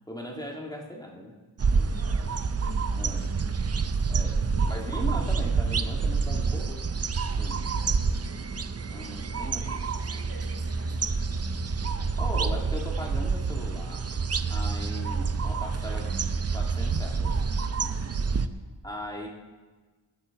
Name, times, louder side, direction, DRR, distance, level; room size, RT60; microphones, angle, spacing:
voice 1, 0.1-1.3 1.7-2.0 3.0-3.3 4.1-7.6 8.9-9.8 12.2-14.0 14.5-16.1 16.5-17.4 18.8-19.3, equal, 10° left, -1 dB, 1.9 m, -39 dB
sound 1, 1.6-18.5, right 4 dB, 35° right, 0.6 m, -28 dB
voice 2, 1.9-3.6 3.9-4.9 7.5-8.7 9.1-11.6 14.8-15.6 15.8-16.2 17.9-18.6, equal, 85° right, -3 dB, 4.2 m, -49 dB
21.0 x 9.0 x 4.6 m, 1.3 s
wide cardioid pair, 125°, 43 cm